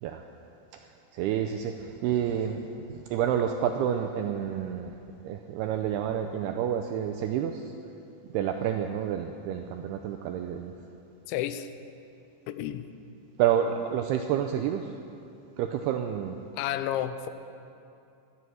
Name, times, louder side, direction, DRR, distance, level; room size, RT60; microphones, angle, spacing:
voice 1, 1.1-4.9 5.2-7.7 8.3-10.7 13.4-14.9 15.6-16.4, right 9 dB, 85° right, 5 dB, 2.3 m, -29 dB
voice 2, 11.3-11.7 12.5-12.9 16.5-17.3, left 11 dB, 85° left, 11 dB, 3.0 m, -31 dB
16.5 x 12.5 x 6.4 m, 2.6 s
omnidirectional pair, 5.2 m